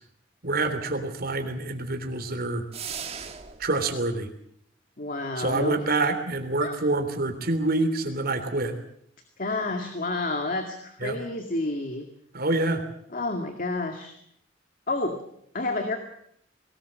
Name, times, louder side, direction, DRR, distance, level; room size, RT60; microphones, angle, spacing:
voice 1, 0.4-2.7 3.6-4.3 5.4-8.7 11.0-11.2 12.3-12.8, right 2 dB, 55° right, 6 dB, 3.5 m, -26 dB
sound 1, 2.7-3.7, right 7 dB, 35° right, 1.7 m, -37 dB
voice 2, 5.0-5.8 6.6-6.8 9.4-12.1 13.1-14.1 14.9-15.2 15.5-16.0, left 2 dB, 50° left, 5 dB, 2.2 m, -29 dB
22.0 x 19.0 x 7.7 m, 0.70 s
head